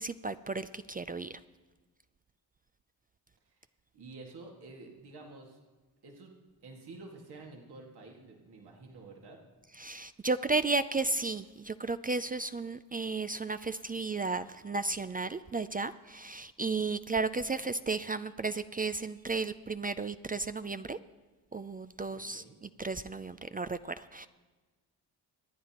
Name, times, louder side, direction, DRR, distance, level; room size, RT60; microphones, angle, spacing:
voice 1, 0.0-1.4 9.8-21.0 21.5-24.3, right 3 dB, 25° right, 12 dB, 0.4 m, -34 dB
voice 2, 3.9-5.6 6.0-6.3 6.6-9.4 22.1-22.6, right 3 dB, 70° right, 0 dB, 2.1 m, -50 dB
25.0 x 9.4 x 3.0 m, 1.3 s
cardioid pair, 65°, 40 cm